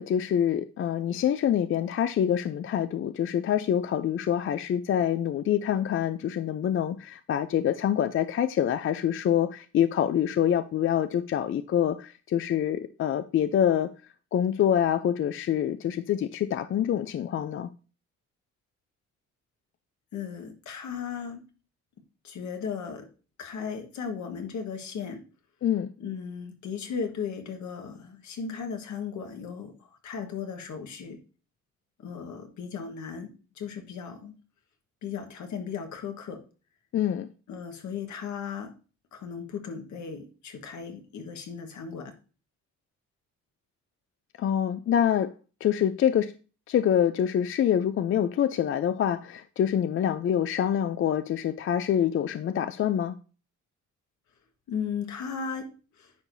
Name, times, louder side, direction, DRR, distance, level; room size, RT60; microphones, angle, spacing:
voice 1, 0.0-13.9 14.3-17.7 25.6-25.9 36.9-37.3 44.4-45.3 45.6-46.3 46.7-53.2, left 9 dB, 45° left, 0.4 m, -26 dB
voice 2, 20.1-21.4 22.2-23.1 23.4-25.2 26.0-31.2 32.0-34.3 35.0-36.4 37.5-38.7 39.1-42.1 54.7-56.1, left 6 dB, 70° left, 1.4 m, -36 dB
9.4 x 4.5 x 2.6 m
cardioid pair, 90°, 30 cm